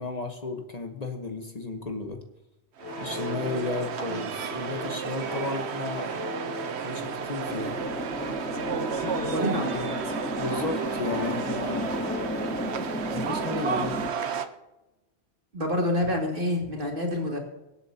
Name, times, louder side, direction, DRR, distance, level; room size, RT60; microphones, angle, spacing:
voice 1, 0.0-2.2 3.0-6.1 6.8-7.7 10.3-11.9 13.1-14.1, left 3 dB, 40° left, 5 dB, 1.1 m, -33 dB
sound 1, 2.8-13.7, left 1 dB, 30° right, 2.6 m, -39 dB
sound 2, 2.8-14.5, right 7 dB, 80° right, 1.1 m, -33 dB
sound 3, 7.5-14.1, left 1 dB, 10° left, 0.5 m, -34 dB
voice 2, 8.7-10.2 15.5-17.4, left 1 dB, 55° right, 0 dB, 2.5 m, -28 dB
24.5 x 8.4 x 2.8 m, 0.99 s
omnidirectional pair, 1.1 m